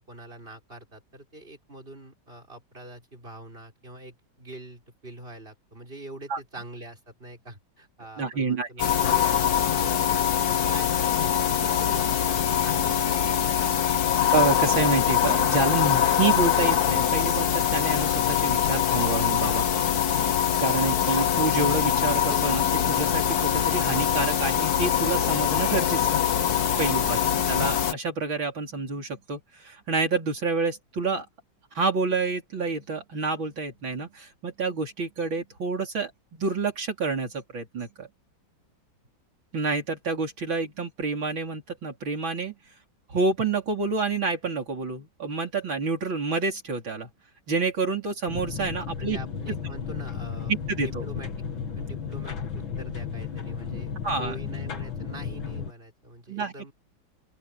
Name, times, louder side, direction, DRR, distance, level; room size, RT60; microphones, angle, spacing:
voice 1, 0.0-13.9 27.0-27.4 49.0-51.4 51.7-53.9 54.2-56.7, right 1 dB, 25° right, 6.4 m, -44 dB
voice 2, 8.2-8.7 14.3-19.7 20.6-26.2 26.8-27.2 27.5-31.3 31.7-38.1 39.5-42.5 43.1-47.1 47.5-49.2 50.7-51.0 54.0-54.3 56.3-56.7, right 4 dB, 80° right, 4.9 m, -28 dB
sound 1, 8.8-27.9, left 9 dB, 55° left, 1.5 m, -23 dB
sound 2, 48.3-55.7, left 6 dB, 85° left, 2.7 m, -34 dB
open air
omnidirectional pair, 2.1 m